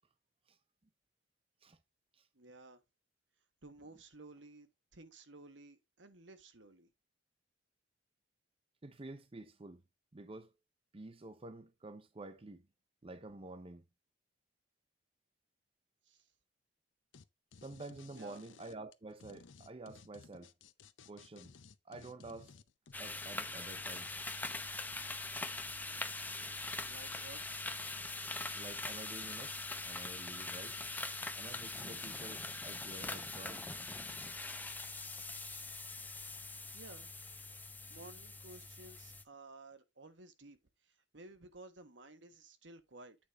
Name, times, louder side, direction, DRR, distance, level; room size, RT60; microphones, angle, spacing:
voice 1, 2.3-2.8 3.6-6.9 16.0-16.3 18.1-18.4 26.8-27.6 36.7-37.1 37.9-43.2, right 2 dB, 70° right, 1.4 m, -55 dB
voice 2, 8.8-9.8 10.1-10.5 10.9-12.7 13.0-13.8 17.6-20.5 21.1-21.5 21.8-22.6 23.0-24.1 28.5-29.6 29.9-30.8 31.4-33.7 35.6-35.7, right 2 dB, 30° right, 0.7 m, -49 dB
sound 1, 17.1-17.2 17.5-22.9, left 5 dB, 90° left, 0.7 m, -57 dB
sound 2, 22.9-39.2, left 2 dB, 10° left, 0.8 m, -42 dB
8.6 x 4.9 x 3.7 m
head